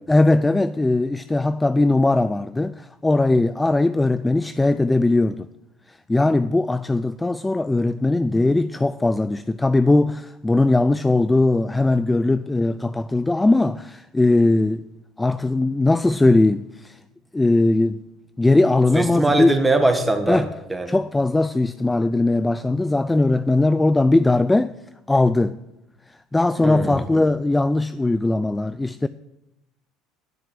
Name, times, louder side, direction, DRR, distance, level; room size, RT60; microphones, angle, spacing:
voice 1, 0.1-5.5 5.9-14.8 15.2-17.0 17.3-18.0 18.4-19.5 20.3-20.5 20.9-24.7 25.1-25.6 26.3-29.1, left 2 dB, 10° left, 0.3 m, -19 dB
voice 2, 18.9-21.0 26.6-27.0, right 2 dB, 10° right, 1.5 m, -21 dB
10.5 x 6.7 x 8.0 m
supercardioid pair, 95°, 0 cm